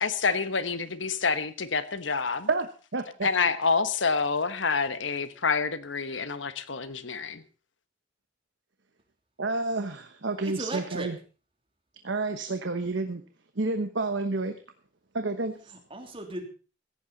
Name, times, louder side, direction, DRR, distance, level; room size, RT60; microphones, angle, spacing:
voice 1, 0.0-2.5 3.2-7.4, left 5 dB, 75° left, 12 dB, 1.3 m, -27 dB
voice 2, 2.5-3.3 9.4-11.2 12.0-13.2 13.6-14.5 15.1-15.7, right 3 dB, 70° right, 8 dB, 1.1 m, -30 dB
voice 3, 10.4-11.1 15.7-16.5, right 2 dB, 30° right, 4 dB, 3.1 m, -36 dB
16.5 x 15.0 x 4.1 m, 0.37 s
head